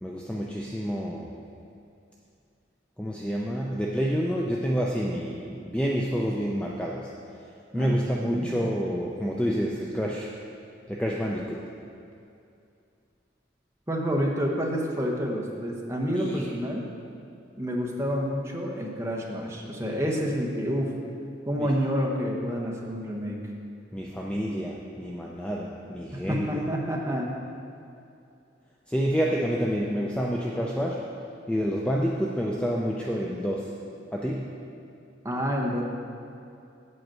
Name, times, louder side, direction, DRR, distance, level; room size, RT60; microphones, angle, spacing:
voice 1, 0.0-1.3 3.0-7.1 7.7-10.3 10.9-11.6 16.1-16.5 21.6-21.7 23.9-26.5 28.9-31.0 31.5-33.7 34.1-34.5, equal, 5° left, -3 dB, 0.4 m, -28 dB
voice 2, 7.7-8.5 13.9-16.9 17.6-20.9 21.5-23.4 26.1-27.4 35.2-35.8, equal, 15° right, -1 dB, 0.9 m, -28 dB
7.8 x 5.1 x 7.5 m, 2.6 s
head